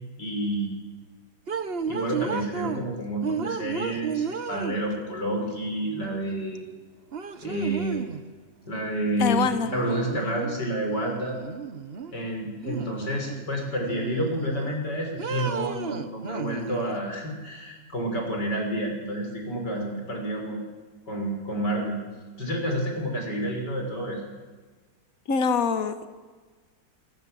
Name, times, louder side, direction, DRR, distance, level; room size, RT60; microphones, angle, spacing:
voice 1, 0.2-0.7 1.9-6.6 7.4-8.1 8.6-11.4 12.1-20.6 21.1-22.0 22.4-24.3, right 1 dB, 70° left, 2 dB, 6.9 m, -29 dB
sound 1, 1.5-2.9 3.2-5.1 6.6-6.7 7.1-8.2 9.6-10.6 10.9-12.1 12.6-13.5 13.9-14.8 15.2-17.0, right 6 dB, 40° right, 1.3 m, -33 dB
voice 2, 9.2-9.7 25.3-26.1, left 6 dB, 55° left, 9 dB, 2.0 m, -24 dB
26.0 x 25.0 x 7.9 m, 1.4 s
omnidirectional pair, 1.9 m